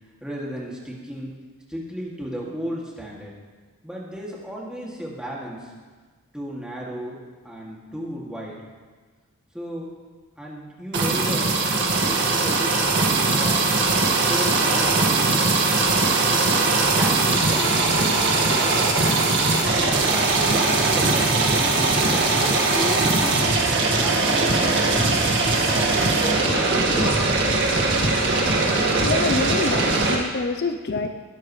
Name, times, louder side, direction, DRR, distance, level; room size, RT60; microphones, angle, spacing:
voice 1, 0.2-1.3 1.7-3.3 3.8-5.7 6.3-7.2 7.4-8.6 9.5-9.9 10.4-11.5 12.0-12.8 13.3-13.7 14.3-16.0 16.3-18.0 18.6-19.3 19.8-23.4 24.0-25.0 25.7-27.2, equal, 5° right, -5 dB, 2.4 m, -34 dB
sound 1, 10.9-30.1, right 3 dB, 55° right, 1.9 m, -20 dB
voice 2, 29.0-31.1, left 3 dB, 50° left, 6 dB, 0.6 m, -26 dB
21.0 x 11.5 x 3.3 m, 1.4 s
head